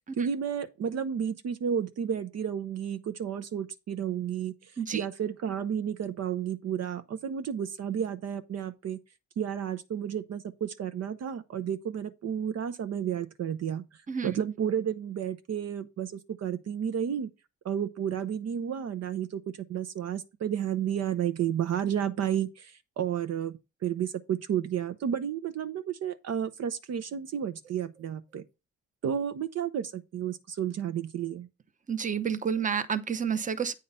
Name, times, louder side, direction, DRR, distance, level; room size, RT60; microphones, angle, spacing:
voice 1, 0.2-4.5 4.9-9.0 9.4-13.8 14.2-17.3 17.6-19.4 19.7-28.4 29.0-31.5, right 8 dB, 55° right, 0.7 m, -32 dB
voice 2, 31.9-33.7, right 7 dB, 25° right, 0.8 m, -29 dB
8.7 x 3.8 x 5.5 m
cardioid pair, 90°, 30 cm